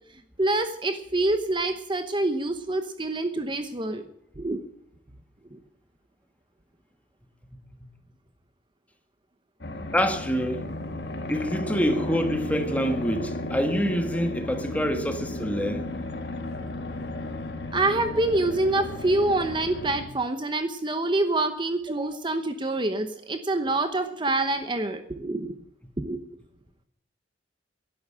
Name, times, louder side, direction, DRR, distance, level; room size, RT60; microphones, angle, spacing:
voice 1, 0.4-4.0 4.4-4.6 5.5-5.6 17.7-25.6 26.0-26.2, right 2 dB, 25° right, 0.9 m, -26 dB
sound 1, 9.6-20.1, left 1 dB, 65° left, 2.0 m, -34 dB
voice 2, 9.9-10.6 11.3-15.8, equal, 10° left, 1.6 m, -26 dB
11.5 x 11.0 x 8.6 m
head